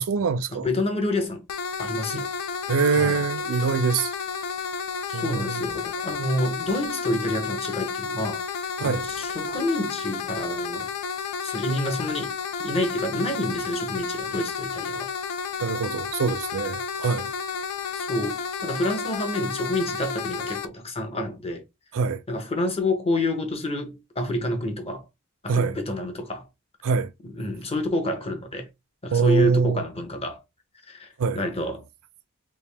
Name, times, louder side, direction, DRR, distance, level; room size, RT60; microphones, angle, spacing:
voice 1, 0.0-0.7 2.1-2.2 2.7-4.1 5.1-5.6 8.8-9.0 15.6-17.3 21.9-22.2 25.5-25.8 26.8-27.1 29.1-29.8 31.2-31.4, right 5 dB, 65° right, 0.4 m, -24 dB
voice 2, 0.5-1.4 1.8-2.3 3.0-3.2 5.1-10.9 11.4-15.1 18.0-21.6 22.3-25.0 25.4-26.4 27.2-28.7 29.0-30.4 30.9-31.1 31.3-31.8, left 1 dB, 25° left, 0.8 m, -28 dB
sound 1, 1.5-20.7, left 5 dB, 80° left, 0.5 m, -31 dB
3.4 x 2.6 x 3.3 m
head